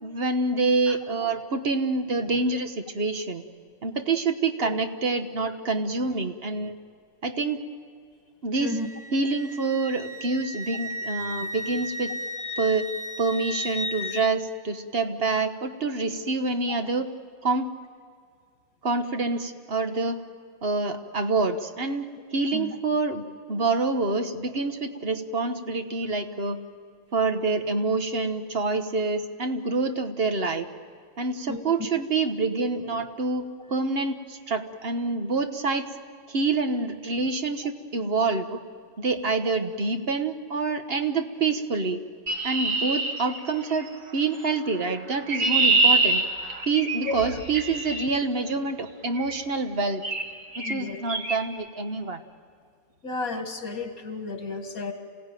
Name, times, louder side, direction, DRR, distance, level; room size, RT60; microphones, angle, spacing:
voice 1, 0.0-3.4 3.8-6.7 7.2-7.6 8.4-8.8 9.1-12.1 12.6-12.9 13.2-17.1 17.4-17.7 18.8-20.2 20.6-26.6 27.1-30.7 31.2-35.9 36.3-38.6 39.0-42.0 42.4-46.2 46.7-50.0 50.6-52.2, right 3 dB, 45° right, 7 dB, 1.4 m, -27 dB
Wind instrument woodwind instrument, 8.6-14.3, left 1 dB, 25° left, 1.0 m, -35 dB
voice 2, 31.5-31.9 47.0-47.2 50.6-51.0 53.0-54.9, left 3 dB, 90° left, 4 dB, 2.7 m, -33 dB
Chirp tweet, 42.3-43.9 44.9-48.1 49.2-49.4 50.0-50.3 50.5-50.8 51.1-51.4, right 3 dB, 65° right, 2.3 m, -25 dB
27.5 x 17.5 x 9.1 m, 2.2 s
omnidirectional pair, 1.5 m